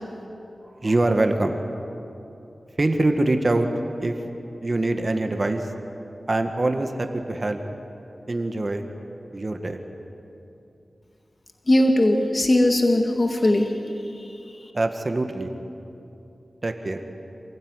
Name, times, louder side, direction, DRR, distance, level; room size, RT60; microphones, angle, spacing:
voice 1, 0.7-1.6 2.8-3.7 4.0-4.2 4.6-5.7 6.3-7.6 8.3-8.9 9.3-9.8 14.7-15.5 16.6-17.0, right 2 dB, 45° right, 6 dB, 1.7 m, -24 dB
voice 2, 11.7-13.7, left 1 dB, 45° left, 3 dB, 2.0 m, -19 dB
27.5 x 16.0 x 9.8 m, 2.9 s
wide cardioid pair, 55°, 0 cm